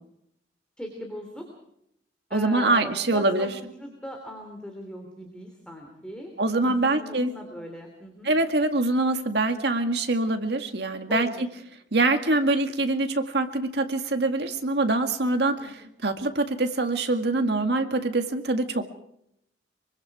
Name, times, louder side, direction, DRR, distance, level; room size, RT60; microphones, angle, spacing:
voice 1, 0.8-1.5 2.3-6.3 6.6-8.3 11.1-11.4 15.6-15.7, equal, 5° left, 2 dB, 3.2 m, -39 dB
voice 2, 2.3-3.5 6.4-7.3 8.2-11.5 11.9-18.9, right 2 dB, 60° right, 6 dB, 1.9 m, -24 dB
24.5 x 24.5 x 4.9 m, 0.76 s
head